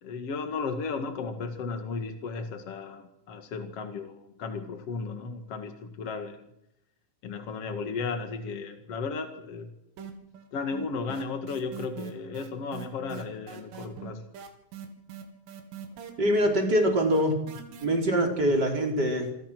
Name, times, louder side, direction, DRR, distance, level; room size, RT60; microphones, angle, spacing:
voice 1, 0.0-6.4 7.2-9.7 10.5-14.2, left 4 dB, 55° left, 6 dB, 1.7 m, -35 dB
sound 1, 10.0-10.5 10.7-17.9, right 9 dB, 90° right, 5.3 m, -42 dB
voice 2, 16.2-17.3 17.8-19.3, equal, 20° right, 2 dB, 4.4 m, -24 dB
28.0 x 23.0 x 6.2 m, 0.82 s
omnidirectional pair, 5.6 m